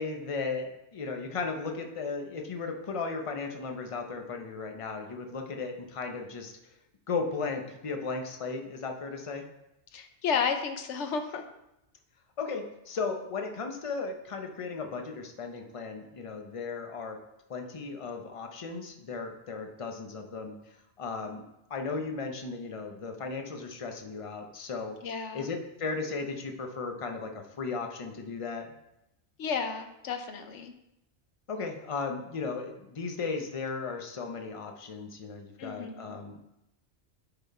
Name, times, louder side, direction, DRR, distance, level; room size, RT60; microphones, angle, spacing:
voice 1, 0.0-6.6 7.1-9.4 12.4-17.2 17.5-20.6 21.0-25.0 25.3-28.7 31.5-36.5, left 4 dB, 35° left, 4 dB, 0.7 m, -36 dB
voice 2, 9.9-11.4 25.0-25.5 29.4-30.7 35.6-36.1, left 6 dB, 75° left, 6 dB, 1.1 m, -32 dB
10.5 x 3.9 x 4.2 m, 0.86 s
omnidirectional pair, 1.2 m